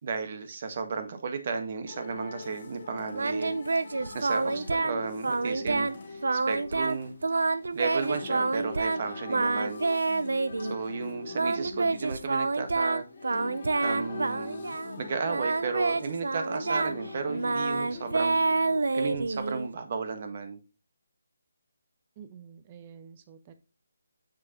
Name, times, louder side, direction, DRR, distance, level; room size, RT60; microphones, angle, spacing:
voice 1, 0.0-3.5 3.9-7.2 7.7-9.8 10.6-13.0 13.8-18.4 18.9-20.6, right 5 dB, 45° right, 1.4 m, -34 dB
Canto monjas monasterio de Quilvo Chile, 1.9-19.4, left 3 dB, 45° left, 1.7 m, -42 dB
Singing, 3.1-5.0 5.2-5.9 6.2-9.0 9.3-10.7 11.3-14.9 15.3-19.7, right 3 dB, 75° right, 0.6 m, -28 dB
voice 2, 22.2-23.5, right 7 dB, 25° right, 0.9 m, -49 dB
7.4 x 6.2 x 3.0 m
figure-of-eight pair, 160°, 0 cm